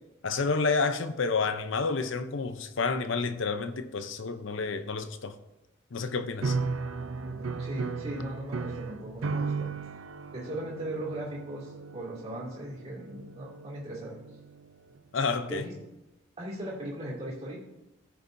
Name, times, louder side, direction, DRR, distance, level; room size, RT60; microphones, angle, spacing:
voice 1, 0.2-5.3 5.9-6.6 15.1-15.6, left 4 dB, 65° left, 0.7 m, -29 dB
sound 1, 6.4-14.7, right 4 dB, 85° right, 0.5 m, -36 dB
voice 2, 7.2-9.7 10.3-14.1 15.5-15.7 16.4-17.6, right 1 dB, 30° right, 2.5 m, -38 dB
15.0 x 6.8 x 2.6 m
head